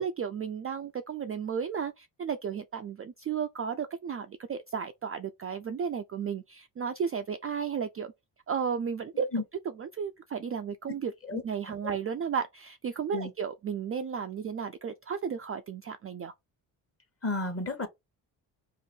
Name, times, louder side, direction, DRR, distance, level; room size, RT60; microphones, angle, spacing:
voice 1, 0.0-8.1 8.5-9.4 9.8-16.3, right 7 dB, 30° right, 0.4 m, -34 dB
voice 2, 17.2-17.9, left 2 dB, 30° left, 1.1 m, -31 dB
2.8 x 2.5 x 4.3 m
supercardioid pair, 55°, 48 cm